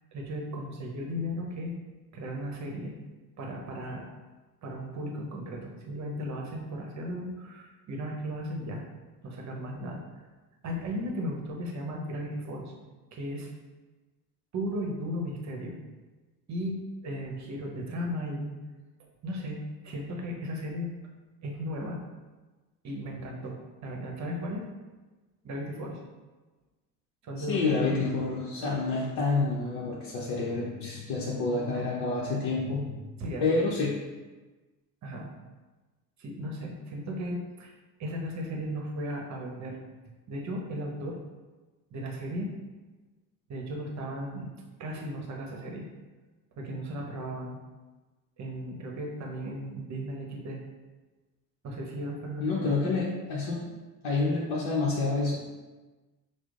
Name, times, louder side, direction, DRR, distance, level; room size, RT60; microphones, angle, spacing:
voice 1, 0.1-1.7 2.1-2.9 3.4-4.1 4.6-8.8 9.2-10.0 10.6-12.7 13.1-13.5 14.5-15.8 16.5-18.5 19.2-20.9 21.4-22.0 22.8-23.5 23.8-24.6 25.4-26.0 27.2-28.0 31.6-31.8 33.2-33.6 35.0-35.3 36.2-37.7 38.0-39.8 40.1-41.2 41.9-42.5 43.5-44.5 44.8-45.9 46.6-47.6 48.4-50.6 51.6-52.8, equal, 35° right, 0 dB, 0.9 m, -36 dB
voice 2, 27.4-33.0 33.4-33.9 52.4-53.6 54.0-55.3, left 3 dB, 50° left, -5 dB, 0.8 m, -28 dB
5.9 x 2.1 x 2.5 m, 1.2 s
hypercardioid pair, 65°, 49 cm